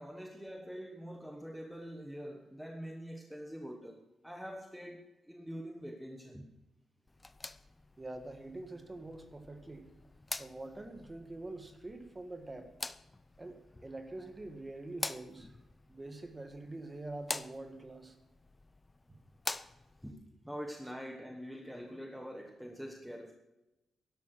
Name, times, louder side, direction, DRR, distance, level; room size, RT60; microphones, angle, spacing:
voice 1, 0.0-6.5 20.0-23.3, equal, ahead, 1.1 m, -45 dB
sound 1, 7.1-20.1, left 2 dB, 20° left, 0.5 m, -46 dB
voice 2, 8.0-9.9 10.4-12.7 13.4-15.6 15.9-18.2, right 2 dB, 20° right, 1.7 m, -45 dB
12.5 x 11.5 x 6.0 m
cardioid pair, 120°, 0 cm